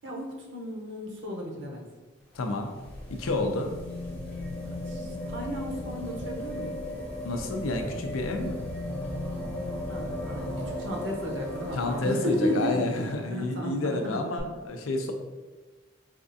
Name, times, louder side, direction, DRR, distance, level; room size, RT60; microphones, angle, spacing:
voice 1, 0.0-1.8 4.6-6.8 9.9-10.5 10.8-12.9 13.3-14.2, left 1 dB, 60° right, 0 dB, 0.7 m, -33 dB
sound 1, 2.2-13.2 14.4-14.5, left 1 dB, 5° left, 0.6 m, -36 dB
voice 2, 2.3-2.7 3.1-3.7 7.2-8.6 11.7-15.1, left 2 dB, 85° left, 5 dB, 0.5 m, -30 dB
4.2 x 2.4 x 2.6 m, 1.3 s
head